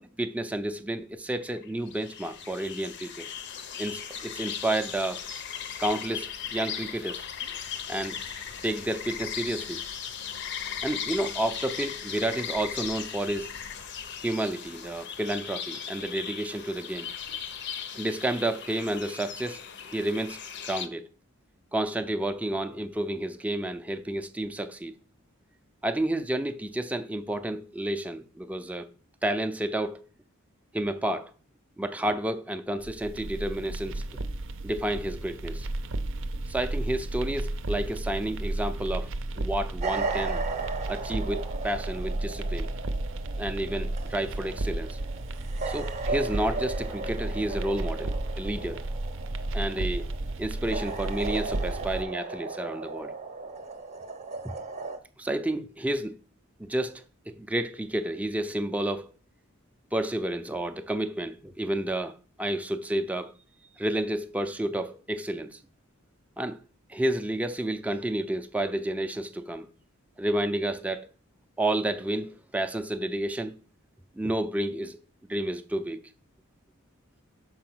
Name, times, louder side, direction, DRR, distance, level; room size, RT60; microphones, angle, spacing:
voice 1, 0.0-3.3 3.8-5.2 5.8-7.2 7.9-9.8 10.8-13.5 14.2-17.1 17.9-19.6 19.9-20.4 20.7-21.0 21.7-24.9 25.8-28.9 29.2-30.0 30.7-31.3 31.8-34.0 34.6-35.7 36.5-40.4 40.9-42.7 43.4-45.0 45.7-48.8 49.5-50.0 50.4-53.1 54.4-54.5 55.2-56.2 56.6-59.1 59.9-63.3 63.8-65.6 66.4-66.6 66.9-69.7 70.2-71.1 71.6-73.5 74.2-75.0 75.3-76.0, right 1 dB, 5° right, 0.4 m, -30 dB
sound 1, 1.4-20.9, left 8 dB, 55° left, 0.7 m, -38 dB
sound 2, 32.8-52.0, right 2 dB, 65° right, 0.6 m, -33 dB
sound 3, 39.8-55.0, right 4 dB, 35° right, 0.8 m, -36 dB
5.9 x 4.7 x 6.0 m
head